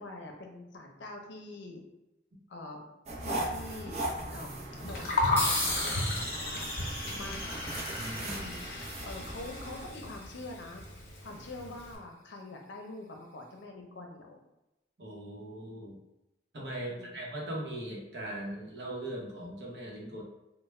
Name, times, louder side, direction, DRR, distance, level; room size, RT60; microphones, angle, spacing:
voice 1, 0.0-1.8 2.5-2.9 3.2-4.0 4.2-4.5 4.9-6.7 7.1-7.6 8.3-10.8 11.2-14.5 16.8-17.2, left 2 dB, 85° left, 2 dB, 0.6 m, -45 dB
sound 1, 3.1-9.9, right 1 dB, 35° right, 0.5 m, -39 dB
Gurgling, 4.7-12.0, left 2 dB, 55° left, 0.8 m, -35 dB
sound 2, 5.4-10.3, left 1 dB, 10° left, 0.6 m, -36 dB
voice 2, 7.9-8.4 15.0-16.0 16.5-20.2, right 1 dB, 70° right, -2 dB, 0.8 m, -40 dB
3.3 x 2.1 x 3.1 m, 0.93 s
head